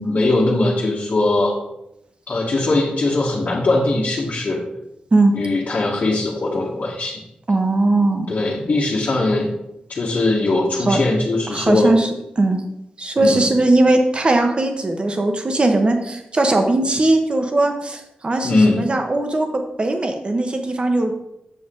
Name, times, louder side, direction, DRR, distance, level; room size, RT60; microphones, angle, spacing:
voice 1, 0.0-1.5 2.3-4.6 5.3-7.2 8.3-9.5 9.9-11.9 13.2-13.5 18.4-18.8, left 2 dB, 50° left, -5 dB, 1.5 m, -20 dB
voice 2, 7.5-8.3 10.9-11.0 11.5-12.1 12.4-12.6 13.0-21.1, right 2 dB, 35° right, 5 dB, 1.2 m, -19 dB
7.7 x 6.5 x 3.9 m, 0.84 s
wide cardioid pair, 100°, 3 cm